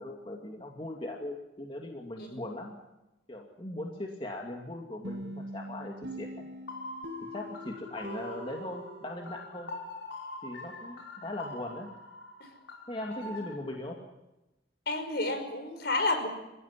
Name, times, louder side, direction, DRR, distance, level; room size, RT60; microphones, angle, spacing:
voice 1, 0.0-2.8 3.3-6.5 7.3-9.7 10.4-11.9 12.9-14.0, left 1 dB, 25° left, 1 dB, 2.4 m, -39 dB
sound 1, 5.0-9.7, right 1 dB, 60° right, 5.9 m, -43 dB
sound 2, 6.7-13.5, left 2 dB, 75° left, 5.5 m, -44 dB
voice 2, 14.9-16.3, left 2 dB, 55° left, 7 dB, 5.3 m, -30 dB
28.0 x 16.5 x 9.9 m, 0.99 s
head